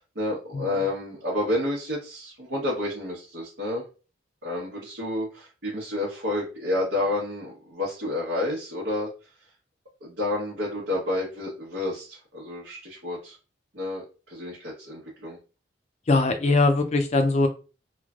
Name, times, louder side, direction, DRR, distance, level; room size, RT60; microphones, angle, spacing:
voice 1, 0.0-3.8 4.4-9.1 10.0-13.4 13.7-15.4, left 1 dB, 80° right, -6 dB, 1.0 m, -30 dB
voice 2, 16.1-17.5, left 2 dB, 40° left, 7 dB, 0.4 m, -21 dB
3.1 x 2.1 x 2.4 m, 0.33 s
head